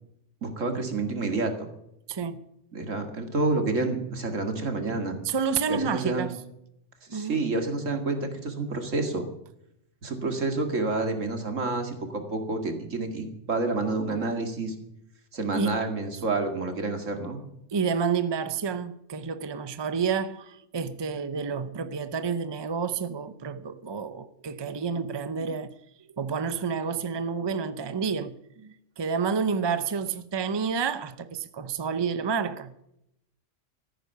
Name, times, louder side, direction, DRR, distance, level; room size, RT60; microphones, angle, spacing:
voice 1, 0.4-1.5 2.7-5.2 5.7-6.3 7.1-9.3 10.0-14.7 15.3-17.4, right 3 dB, 85° right, 2.5 m, -29 dB
voice 2, 2.1-2.4 5.2-6.4 7.1-7.4 15.5-15.8 17.7-25.7 26.2-32.7, right 6 dB, 25° right, 0.7 m, -29 dB
14.0 x 10.0 x 6.9 m
omnidirectional pair, 1.3 m